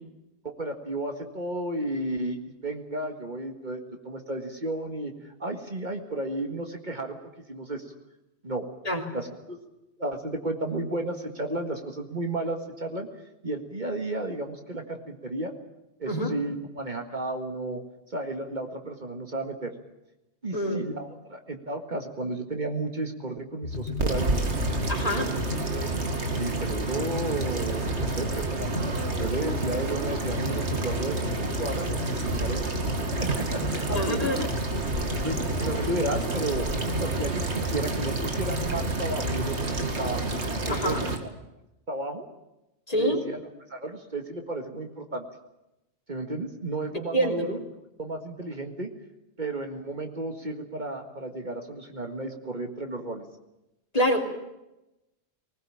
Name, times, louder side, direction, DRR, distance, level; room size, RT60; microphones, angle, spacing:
voice 1, 0.6-7.2 7.5-7.8 8.4-8.7 9.1-9.6 10.0-13.1 13.4-15.5 16.0-17.8 18.1-19.7 20.4-24.4 25.7-25.9 26.3-28.7 29.2-32.6 33.2-34.5 35.1-36.7 37.0-40.2 40.6-41.3 41.9-42.3 43.0-43.4 43.7-45.2 46.1-47.6 48.0-48.9 49.4-53.2, right 2 dB, 45° right, 4 dB, 2.0 m, -33 dB
voice 2, 20.5-20.8 24.9-25.3 33.9-34.5 35.6-35.7 40.7-41.1 42.9-43.2 47.1-47.5 53.9-54.2, equal, 35° left, 1 dB, 3.3 m, -26 dB
sound 1, 23.6-39.6, left 3 dB, 75° left, 1.9 m, -35 dB
sound 2, 23.7-41.2, right 3 dB, 85° right, 2.5 m, -29 dB
20.5 x 19.5 x 8.8 m, 0.93 s
omnidirectional pair, 1.1 m